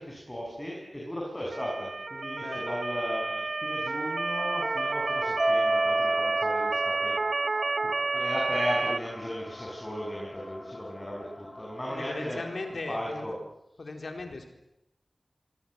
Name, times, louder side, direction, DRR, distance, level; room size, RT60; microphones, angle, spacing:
voice 1, 0.0-7.2 7.9-12.4 12.9-13.3, equal, 15° left, -3 dB, 7.9 m, -36 dB
Motor vehicle (road) / Siren, 1.5-9.0, right 3 dB, 65° right, 1.0 m, -30 dB
voice 2, 2.4-2.8 11.9-13.3 13.8-14.5, left 3 dB, 80° left, 5 dB, 4.2 m, -38 dB
sound 1, 4.3-13.1, left 2 dB, 40° left, 3.1 m, -43 dB
Mallet percussion, 5.4-7.8, right 1 dB, 35° right, 1.6 m, -29 dB
25.5 x 23.5 x 8.2 m, 0.88 s
wide cardioid pair, 60°, 0 cm